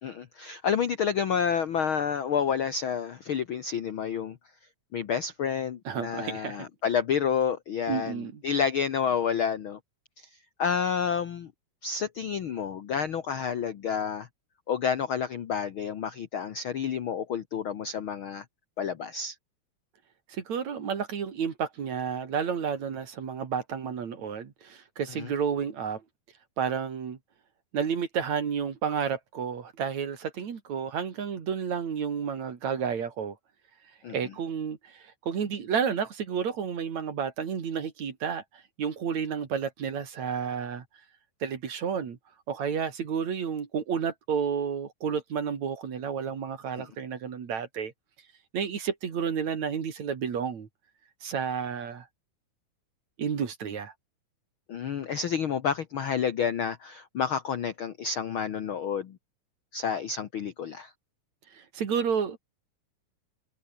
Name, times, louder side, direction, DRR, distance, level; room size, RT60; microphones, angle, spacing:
voice 1, 0.0-4.4 4.9-9.8 10.2-10.3 10.6-11.5 11.8-14.3 14.7-18.4 18.8-19.3 25.2-25.3 34.0-34.2 46.8-46.9 54.7-59.2 59.7-60.9, left 7 dB, 85° left, 1.1 m, -29 dB
voice 2, 5.9-6.7 7.9-8.4 20.3-26.0 26.6-27.2 27.7-33.4 34.1-40.8 41.4-42.2 42.5-47.9 48.5-50.7 51.2-52.1 53.2-53.9 61.5-62.4, right 7 dB, 50° right, 3.7 m, -31 dB
omnidirectional pair, 4.1 m